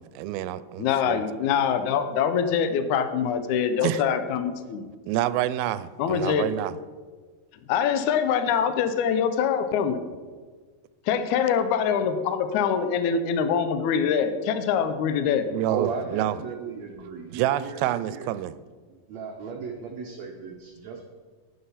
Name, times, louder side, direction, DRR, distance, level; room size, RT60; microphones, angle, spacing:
voice 1, 0.0-1.2 3.8-4.0 5.1-6.8 15.5-16.4 17.3-18.5, right 13 dB, 85° right, 15 dB, 2.4 m, -28 dB
voice 2, 0.8-4.9 6.0-6.5 7.7-10.0 11.1-15.5, left 7 dB, 70° left, 9 dB, 1.9 m, -24 dB
voice 3, 15.7-18.3 18.9-21.0, right 5 dB, 65° right, 1 dB, 1.8 m, -35 dB
11.5 x 9.6 x 5.7 m, 1.5 s
omnidirectional pair, 4.2 m